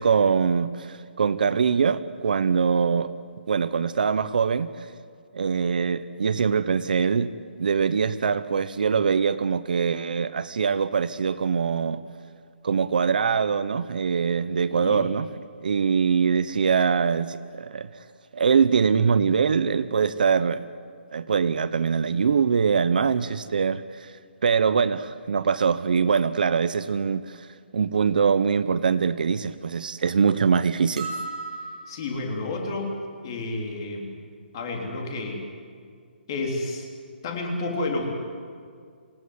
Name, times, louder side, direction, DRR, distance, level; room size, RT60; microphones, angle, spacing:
voice 1, 0.0-3.1 3.5-4.7 5.3-7.3 7.6-12.0 12.6-15.3 15.6-17.9 18.3-20.6 21.1-24.1 24.4-27.5 27.7-31.1, right 6 dB, 50° right, 14 dB, 0.9 m, -23 dB
voice 2, 14.7-15.1 31.9-33.0 33.2-34.1 34.5-35.5 36.3-36.9 37.2-38.1, left 2 dB, 25° left, 1 dB, 3.5 m, -30 dB
sound 1, 31.0-32.3, right 3 dB, 35° right, 6.8 m, -35 dB
27.5 x 17.5 x 9.6 m, 2.1 s
hypercardioid pair, 175°, 6 cm